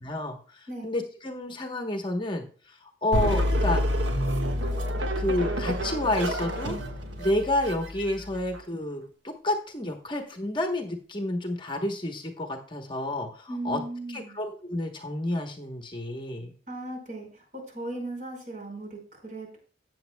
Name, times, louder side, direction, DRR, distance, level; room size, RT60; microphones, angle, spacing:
voice 1, 0.0-3.8 5.2-6.8 7.2-13.8 14.1-16.5, left 1 dB, 25° left, 4 dB, 1.0 m, -30 dB
sound 1, 3.1-8.6, equal, 85° right, 1.5 m, -28 dB
voice 2, 13.5-14.4 16.7-19.6, right 2 dB, 45° right, 1 dB, 4.8 m, -37 dB
14.5 x 8.8 x 2.2 m, 0.41 s
head